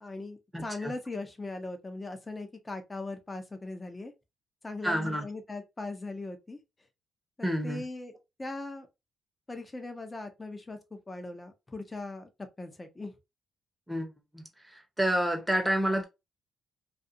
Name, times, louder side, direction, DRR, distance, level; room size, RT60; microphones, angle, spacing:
voice 1, 0.0-4.1 4.6-6.6 7.4-8.1 8.4-8.9 9.5-12.3 12.6-13.1, left 2 dB, 20° left, 0.7 m, -39 dB
voice 2, 0.5-0.9 4.8-5.2 7.4-7.8 13.9-14.4 14.7-16.0, equal, 10° right, 0.8 m, -29 dB
2.5 x 2.4 x 2.6 m
cardioid pair, 90°, 0 cm